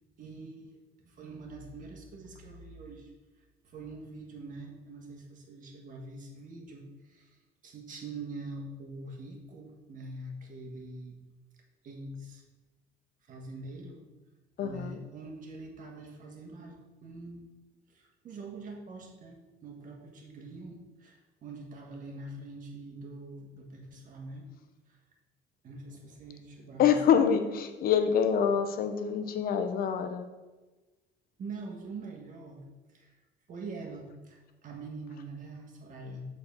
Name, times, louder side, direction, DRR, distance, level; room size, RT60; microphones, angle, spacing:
voice 1, 0.2-0.7 1.0-3.1 3.7-7.3 7.6-11.2 11.8-12.4 13.3-14.0 14.6-17.5 17.9-19.4 19.6-24.5 25.6-27.6 31.4-32.6 32.9-33.1 33.5-36.2, right 2 dB, 50° right, 1 dB, 1.6 m, -44 dB
voice 2, 14.6-15.0 26.8-30.3, left 7 dB, 60° left, 7 dB, 0.8 m, -26 dB
6.9 x 4.1 x 5.4 m, 1.2 s
cardioid pair, 110°, 17 cm